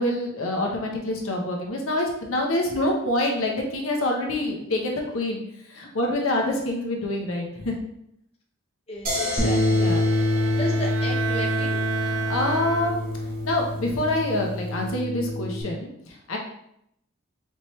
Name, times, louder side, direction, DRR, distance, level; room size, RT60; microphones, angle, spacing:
voice 1, 0.0-5.4 5.7-7.8 9.7-10.0 12.0-13.0 13.4-16.4, left 1 dB, 75° left, 0 dB, 0.7 m, -26 dB
voice 2, 8.9-11.8 12.2-12.3, equal, 30° left, -2 dB, 0.6 m, -35 dB
sound 1, 9.1-14.9, left 1 dB, 40° right, 0.9 m, -36 dB
Bowed string instrument, 9.2-13.3, right 6 dB, 70° right, 0.3 m, -33 dB
Bass guitar, 9.4-15.6, left 1 dB, 15° left, 1.5 m, -26 dB
4.4 x 3.0 x 3.0 m, 0.76 s
head